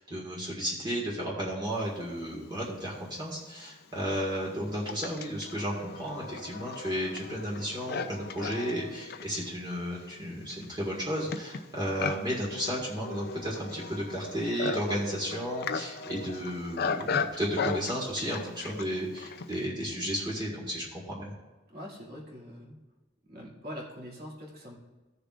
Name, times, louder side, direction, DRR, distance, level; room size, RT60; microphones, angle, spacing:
voice 1, 0.0-21.3, equal, 20° right, -4 dB, 1.7 m, -33 dB
Livestock farm animals working animals, 2.9-3.0 3.7-19.7, left 5 dB, 55° left, 0.5 m, -37 dB
voice 2, 21.7-22.8 23.3-24.7, equal, 55° right, -4 dB, 2.4 m, -43 dB
15.5 x 6.7 x 2.5 m, 1.2 s
head